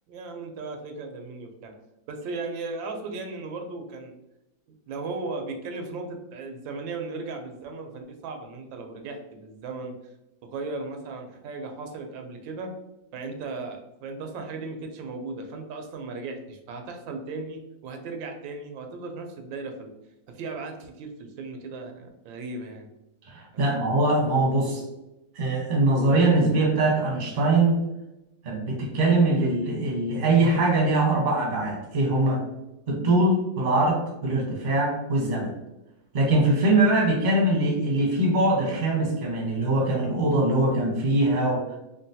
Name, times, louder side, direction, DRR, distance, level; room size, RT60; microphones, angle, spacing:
voice 1, 0.1-1.7 2.1-4.1 4.9-10.0 10.4-12.7 13.1-19.9 20.3-22.9 23.5-23.8, right 3 dB, 90° right, 4 dB, 1.3 m, -36 dB
voice 2, 23.3-24.8 25.3-27.8 28.4-32.4 32.9-35.5 36.1-41.8, right 2 dB, 40° right, -3 dB, 0.6 m, -22 dB
3.7 x 2.2 x 2.6 m, 0.92 s
omnidirectional pair, 2.0 m